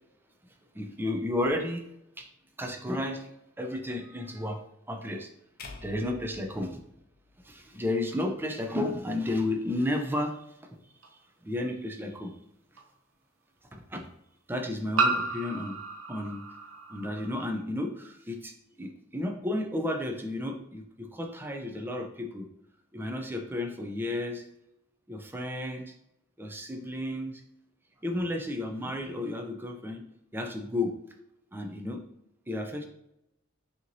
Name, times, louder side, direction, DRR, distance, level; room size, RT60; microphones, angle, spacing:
voice 1, 0.7-1.8 2.2-2.3 2.6-3.3 3.6-4.6 4.9-5.3 5.8-6.8 7.4-10.8 11.1-12.3 13.7-14.1 14.5-15.8 16.1-16.4 16.9-22.5 22.9-24.4 25.1-25.9 26.4-27.4 28.0-30.0 30.3-30.9 31.5-32.0 32.5-32.9, left 1 dB, 10° right, 3 dB, 0.5 m, -32 dB
sound 1, 5.6-7.9, left 3 dB, 50° left, 0.6 m, -48 dB
sound 2, 11.0-11.1 12.8-12.9 15.0-17.5, right 3 dB, 70° right, 0.7 m, -31 dB
5.6 x 2.9 x 2.7 m, 0.82 s
head